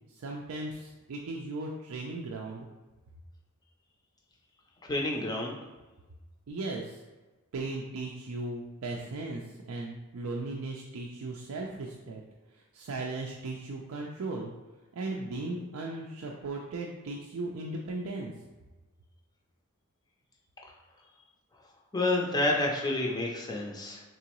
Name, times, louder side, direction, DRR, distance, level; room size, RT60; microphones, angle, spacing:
voice 1, 0.1-2.7 6.5-7.0 7.5-9.4 9.7-12.2 12.7-14.5 14.9-18.3, right 2 dB, 80° right, -1 dB, 0.4 m, -37 dB
voice 2, 4.8-5.5 21.9-24.0, left 2 dB, 20° left, -1 dB, 0.5 m, -29 dB
3.7 x 3.0 x 2.9 m, 1.2 s
head